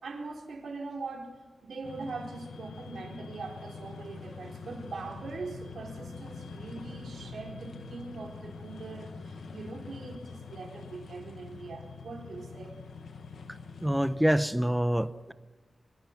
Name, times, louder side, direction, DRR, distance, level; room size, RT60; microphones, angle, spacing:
voice 1, 0.0-12.7, right 3 dB, 85° right, 2 dB, 4.1 m, -42 dB
sound 1, 1.8-14.2, left 5 dB, 90° left, 1.6 m, -45 dB
voice 2, 13.8-15.3, equal, 5° right, 13 dB, 0.9 m, -26 dB
24.5 x 22.5 x 5.9 m, 1.4 s
wide cardioid pair, 130°, 0 cm